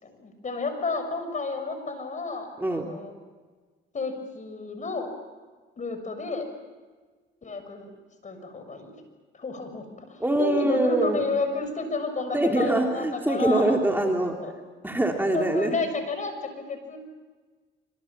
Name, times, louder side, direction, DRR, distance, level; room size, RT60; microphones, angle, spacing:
voice 1, 0.0-3.1 3.9-5.1 5.8-6.5 7.4-7.9 8.2-9.0 9.3-13.8 14.2-14.5 15.3-17.0, left 3 dB, 40° left, 7 dB, 6.6 m, -31 dB
voice 2, 10.2-11.2 12.3-14.4 14.8-15.7, right 1 dB, 10° right, 1 dB, 3.2 m, -24 dB
26.5 x 26.0 x 7.4 m, 1.4 s
cardioid pair, 90°, 20 cm